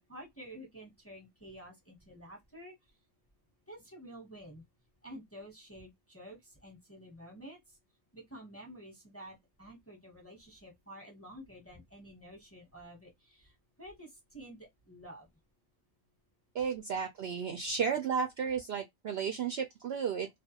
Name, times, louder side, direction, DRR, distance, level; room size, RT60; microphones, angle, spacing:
voice 1, 0.1-2.7 3.7-4.6 5.0-7.8 8.1-15.3, right 1 dB, 10° left, 0.9 m, -50 dB
voice 2, 16.5-20.3, right 6 dB, 65° right, 0.6 m, -33 dB
2.4 x 2.3 x 2.7 m
omnidirectional pair, 1.4 m